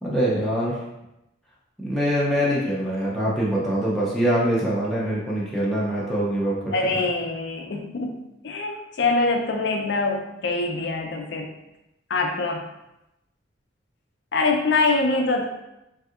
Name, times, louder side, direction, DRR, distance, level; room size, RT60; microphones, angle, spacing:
voice 1, 0.0-0.8 1.8-6.7, equal, ahead, -7 dB, 0.5 m, -24 dB
voice 2, 6.7-11.5 12.1-12.7 14.3-15.5, left 3 dB, 65° left, 3 dB, 0.4 m, -24 dB
3.4 x 2.7 x 2.4 m, 0.90 s
head